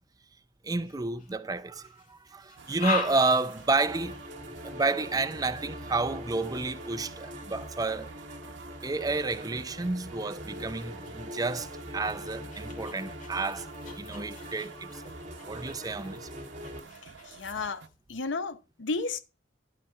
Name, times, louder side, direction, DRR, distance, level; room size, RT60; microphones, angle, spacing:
voice 1, 0.6-4.2 4.6-8.1 8.8-13.7 14.0-15.1 15.5-16.3, right 3 dB, 20° right, 0.5 m, -30 dB
sound 1, 0.8-1.4 1.8-8.4 9.1-9.3 9.9-17.5, left 4 dB, 45° left, 2.2 m, -42 dB
sound 2, 2.6-17.9, right 5 dB, 70° right, 0.9 m, -50 dB
sound 3, 3.9-16.8, equal, 40° right, 2.1 m, -43 dB
voice 2, 17.3-17.8 18.1-19.2, left 3 dB, 75° left, 0.8 m, -32 dB
12.0 x 4.2 x 5.5 m
head